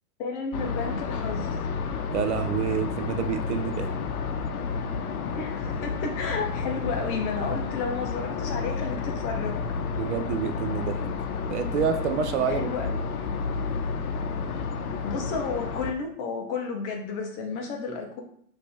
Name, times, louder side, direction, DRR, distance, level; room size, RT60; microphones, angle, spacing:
voice 1, 0.2-1.5 5.3-9.6 12.5-13.0 15.0-18.2, left 4 dB, 30° left, 2 dB, 0.7 m, -32 dB
sound 1, 0.5-15.9, left 5 dB, 70° left, 0.7 m, -31 dB
voice 2, 2.1-4.0 9.9-11.0 11.5-13.0, right 7 dB, 50° right, 7 dB, 0.5 m, -28 dB
5.1 x 2.8 x 3.3 m, 0.64 s
hypercardioid pair, 130°, 46 cm